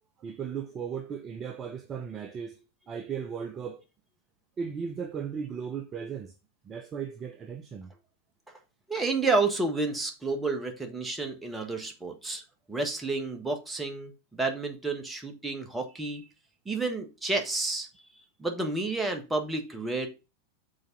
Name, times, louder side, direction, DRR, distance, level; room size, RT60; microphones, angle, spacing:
voice 1, 0.2-3.8 4.6-6.3 6.6-7.9, right 7 dB, 25° right, 0.6 m, -36 dB
voice 2, 8.9-12.4 12.7-16.3 16.6-17.9 18.4-20.1, right 3 dB, 10° right, 1.5 m, -30 dB
6.4 x 4.1 x 5.8 m
figure-of-eight pair, 90°, 0 cm